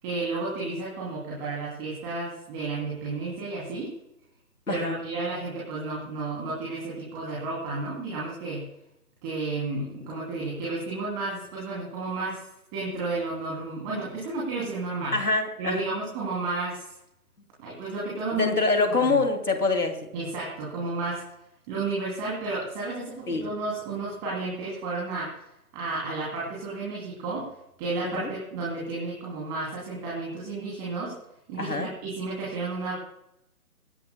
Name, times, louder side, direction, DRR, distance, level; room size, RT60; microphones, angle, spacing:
voice 1, 0.0-3.9 4.7-8.7 9.2-12.4 12.7-15.2 15.6-16.9 17.6-18.6 18.9-19.2 20.1-21.3 21.7-25.4 25.7-27.5 27.8-31.2 31.5-33.0, right 3 dB, 15° right, -5 dB, 3.0 m, -32 dB
voice 2, 15.1-15.8 18.4-20.1 23.3-23.5 28.0-28.3 31.6-31.9, left 3 dB, 75° left, 7 dB, 2.7 m, -25 dB
24.0 x 11.0 x 2.3 m, 0.83 s
figure-of-eight pair, 150°, 46 cm